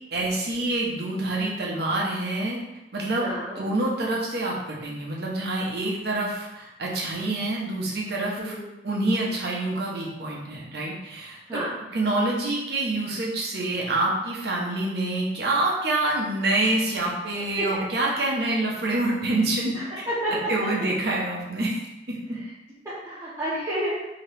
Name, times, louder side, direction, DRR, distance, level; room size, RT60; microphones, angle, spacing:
voice 1, 0.1-2.6 2.9-3.3 3.6-8.5 8.8-11.6 11.9-19.7 20.5-21.8 22.1-22.4, right 2 dB, 60° right, -2 dB, 0.8 m, -26 dB
voice 2, 3.2-3.6 8.4-8.7 11.5-11.7 17.6-17.7 19.2-19.3 19.7-20.7 22.3-22.5 22.8-24.1, right 1 dB, 20° right, -12 dB, 0.7 m, -30 dB
2.9 x 2.8 x 3.3 m, 0.94 s
head